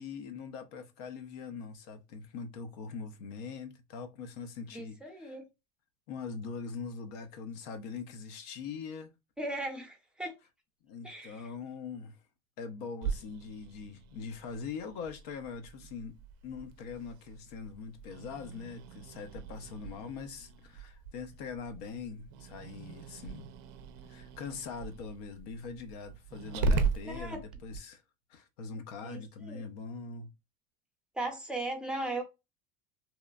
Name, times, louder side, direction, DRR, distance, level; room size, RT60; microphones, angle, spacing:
voice 1, 0.0-5.4 6.1-9.1 10.8-12.2 12.6-16.2 16.4-23.5 24.1-28.0 28.3-30.3, left 5 dB, 80° left, 0.6 m, -42 dB
voice 2, 4.7-5.4 9.4-10.3 11.0-11.5 27.0-27.4 29.0-29.2 29.5-29.7 31.1-32.2, right 2 dB, 5° right, 0.5 m, -37 dB
Growling, 13.0-27.8, right 3 dB, 55° right, 0.4 m, -38 dB
3.0 x 2.1 x 2.3 m
cardioid pair, 155°, 19 cm